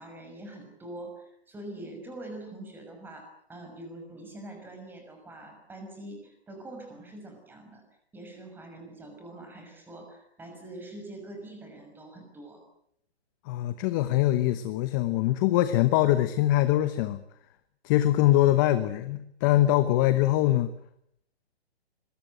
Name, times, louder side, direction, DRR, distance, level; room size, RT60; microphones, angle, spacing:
voice 1, 0.0-7.8 8.1-12.6, right 1 dB, 5° right, 4 dB, 6.1 m, -44 dB
voice 2, 13.5-17.2 17.8-20.7, left 14 dB, 20° left, 12 dB, 0.9 m, -23 dB
26.5 x 22.5 x 7.9 m, 0.70 s
hypercardioid pair, 150°, 32 cm